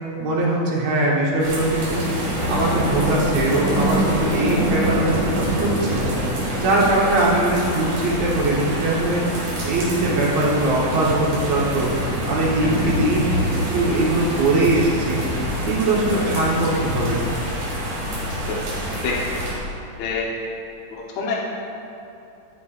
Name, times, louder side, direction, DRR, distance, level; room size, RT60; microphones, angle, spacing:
voice 1, 0.2-2.0 2.5-6.1 6.6-9.2 9.6-11.9 12.3-15.2 15.6-17.2, right 2 dB, 60° right, -4 dB, 1.9 m, -21 dB
sound 1, 1.4-19.5, equal, 75° right, 3.8 m, -25 dB
voice 2, 20.9-21.3, left 5 dB, 65° left, -5 dB, 1.8 m, -26 dB
11.5 x 9.7 x 2.5 m, 2.7 s
omnidirectional pair, 4.0 m